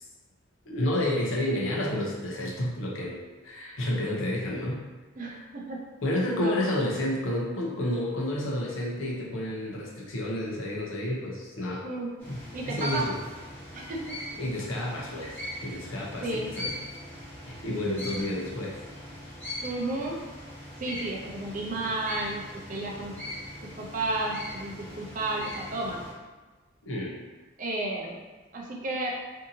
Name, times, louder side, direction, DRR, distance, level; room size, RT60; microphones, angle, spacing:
voice 1, 0.7-3.2 3.4-4.8 5.3-5.4 6.0-11.8 12.3-12.4 12.7-13.1 14.3-16.7 17.5-18.8 26.9-27.1, left 1 dB, 80° left, -3 dB, 0.7 m, -30 dB
voice 2, 5.2-5.9 6.4-6.7 11.8-12.2 12.5-13.1 13.7-14.2 16.2-16.5 19.6-20.2 20.8-23.2 23.6-26.0 27.6-28.2 28.5-29.2, right 2 dB, 40° right, -1 dB, 0.5 m, -32 dB
sound 1, 12.2-26.1, left 1 dB, 10° left, 1.0 m, -41 dB
2.7 x 2.6 x 2.6 m, 1.3 s
head